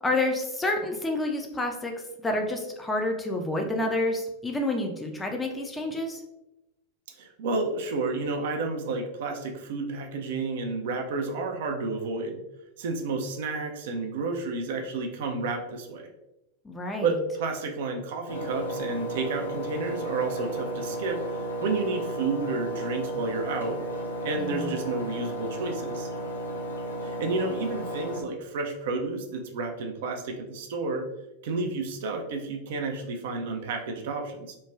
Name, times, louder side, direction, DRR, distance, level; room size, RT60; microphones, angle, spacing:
voice 1, 0.0-6.2 16.6-17.2 24.3-24.7, left 2 dB, 10° left, 2 dB, 0.4 m, -29 dB
voice 2, 7.2-12.4 12.8-16.1 17.0-23.8 24.2-26.1 27.0-31.1 31.4-34.6, right 3 dB, 55° right, 3 dB, 0.3 m, -31 dB
Engine, 18.3-28.2, right 1 dB, 80° left, 0.5 m, -33 dB
3.0 x 2.2 x 2.2 m, 0.94 s
figure-of-eight pair, 90°, 0 cm